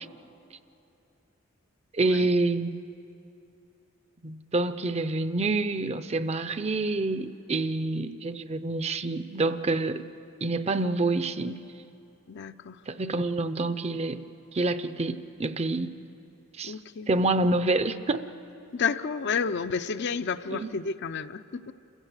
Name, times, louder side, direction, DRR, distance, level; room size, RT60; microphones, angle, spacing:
voice 1, 1.9-2.7 4.2-10.0 10.4-11.6 12.9-14.2 14.5-15.9 16.6-16.7 17.1-18.2 20.5-20.7, right 2 dB, 30° right, 12 dB, 0.6 m, -27 dB
voice 2, 12.3-12.8 16.6-17.1 18.7-21.7, left 6 dB, 60° left, 10 dB, 0.6 m, -31 dB
27.5 x 15.5 x 8.2 m, 2.8 s
head